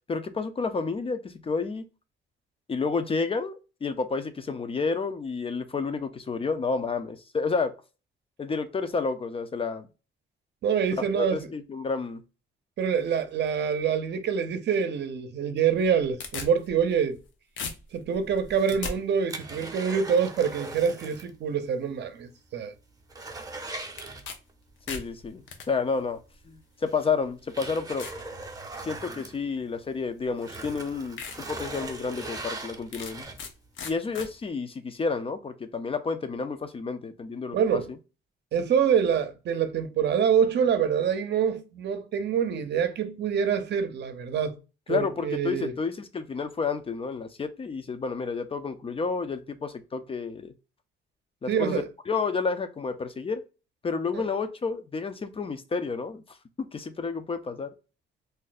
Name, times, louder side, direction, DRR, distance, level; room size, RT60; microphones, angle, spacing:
voice 1, 0.1-1.8 2.7-7.7 8.4-9.9 11.2-12.2 24.9-26.2 26.5-28.1 28.8-31.2 31.5-33.3 33.8-37.8 44.9-50.5 51.4-53.4 53.8-57.7, left 4 dB, 30° left, 0.4 m, -30 dB
voice 2, 10.6-11.4 12.8-17.2 17.9-22.7 37.5-37.8 38.5-44.5 44.9-45.7 51.5-51.9 54.1-54.2, right 7 dB, 60° right, 0.6 m, -26 dB
sound 1, 15.7-17.3 17.6-18.9 24.0-24.4 24.7-25.7 26.5-26.6 27.3-27.4 28.0-28.2 28.7-29.1 30.2-30.3 30.8-30.9 31.2-31.4 31.8-31.9 32.9-33.5 33.8-34.3, left 5 dB, 70° left, 0.7 m, -37 dB
sound 2, 18.4-21.4 21.6-21.7 22.2-22.3 22.7-24.7 26.1-26.2 26.9-30.0 30.3-33.7 34.2-34.3, right 2 dB, 20° right, 0.7 m, -40 dB
2.6 x 2.1 x 4.0 m
cardioid pair, 90°, 20 cm